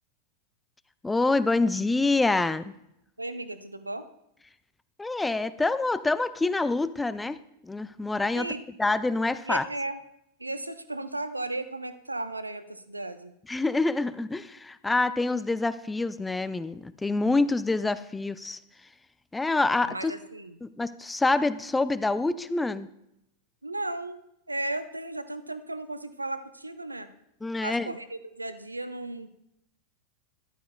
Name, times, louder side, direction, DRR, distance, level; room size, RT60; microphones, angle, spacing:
voice 1, 1.0-2.7 5.0-8.5 8.8-9.7 13.5-18.6 19.3-20.1 20.6-22.9 27.4-27.9, left 3 dB, 10° left, 15 dB, 0.4 m, -26 dB
voice 2, 3.2-4.1 8.3-8.6 9.5-10.0 10.4-13.3 19.9-20.6 23.6-24.2 24.5-27.1 27.6-29.3, right 2 dB, 85° right, 12 dB, 0.6 m, -35 dB
13.5 x 11.5 x 2.2 m, 0.80 s
figure-of-eight pair, 90°, 0 cm